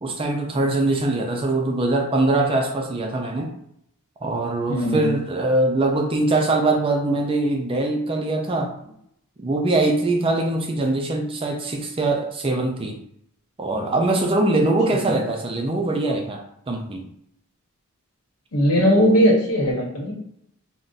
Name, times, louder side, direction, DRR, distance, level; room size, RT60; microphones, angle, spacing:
voice 1, 0.0-3.5 4.2-8.7 9.4-13.0 13.6-16.4 16.7-17.0, right 2 dB, 25° right, 2 dB, 0.4 m, -22 dB
voice 2, 4.7-5.1 15.0-15.1 18.5-20.1, equal, 75° left, -2 dB, 1.0 m, -19 dB
2.5 x 2.1 x 3.8 m, 0.73 s
head